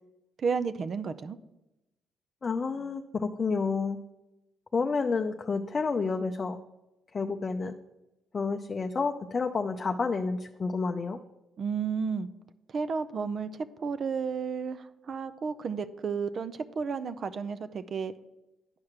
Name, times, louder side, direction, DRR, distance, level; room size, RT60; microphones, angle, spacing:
voice 1, 0.4-1.4 11.6-12.3 12.7-13.5 13.8-18.1, right 5 dB, 50° right, 12 dB, 0.5 m, -32 dB
voice 2, 2.4-4.0 4.7-6.6 7.1-7.7 8.3-11.2, left 4 dB, 35° left, 5 dB, 0.5 m, -30 dB
9.7 x 4.8 x 5.9 m, 0.98 s
cardioid pair, 90°, 0 cm